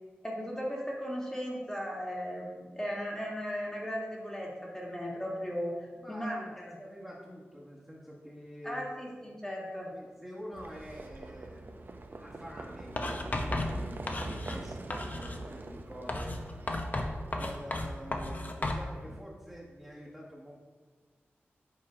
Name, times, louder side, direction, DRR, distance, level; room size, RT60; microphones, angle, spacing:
voice 1, 0.2-6.7 8.6-9.9, equal, 10° left, -3 dB, 1.5 m, -37 dB
voice 2, 6.0-9.0 9.9-16.4 17.3-20.5, equal, 5° right, -6 dB, 1.3 m, -47 dB
Livestock farm animals working animals, 10.5-19.2, right 2 dB, 50° right, 0.6 m, -45 dB
Writing, 13.0-14.6 14.9-15.4 16.1-18.9, left 1 dB, 40° left, 0.7 m, -34 dB
7.2 x 3.1 x 4.8 m, 1.4 s
cardioid pair, 55°, 4 cm